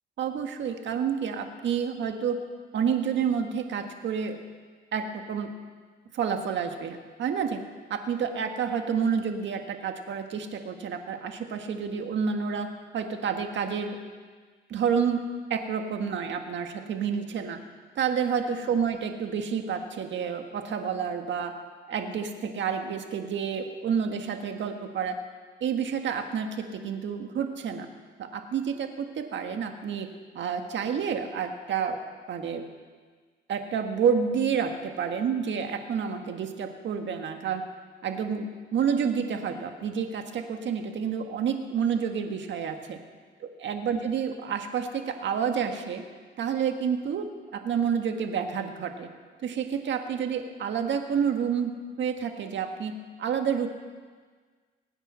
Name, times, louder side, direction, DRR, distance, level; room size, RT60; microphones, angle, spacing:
voice 1, 0.2-2.4 2.7-4.4 4.9-5.5 6.1-7.6 7.9-12.7 12.9-14.0 14.7-15.2 15.5-17.6 17.9-21.5 21.9-25.2 25.6-27.9 28.2-30.1 30.3-32.0 32.3-32.6 33.5-37.6 38.0-43.0 43.4-46.0 46.4-49.1 49.4-53.7, right 7 dB, 65° right, 5 dB, 1.7 m, -29 dB
21.0 x 9.2 x 6.3 m, 1.5 s
cardioid pair, 90°, 20 cm